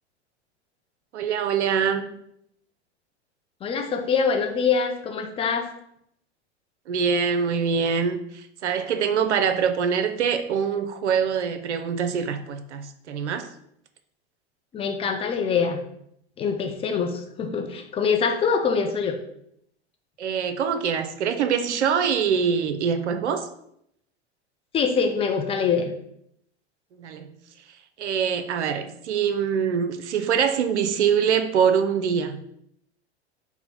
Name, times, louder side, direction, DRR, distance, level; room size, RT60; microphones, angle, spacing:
voice 1, 1.1-2.1 6.9-13.5 17.0-17.1 20.2-23.5 27.0-27.3 28.0-32.4, right 7 dB, 85° right, 8 dB, 0.5 m, -24 dB
voice 2, 3.6-5.7 14.7-15.8 16.4-19.2 24.7-25.9, left 5 dB, 20° left, 4 dB, 0.4 m, -24 dB
4.1 x 2.1 x 4.3 m, 0.73 s
hypercardioid pair, 95°, 33 cm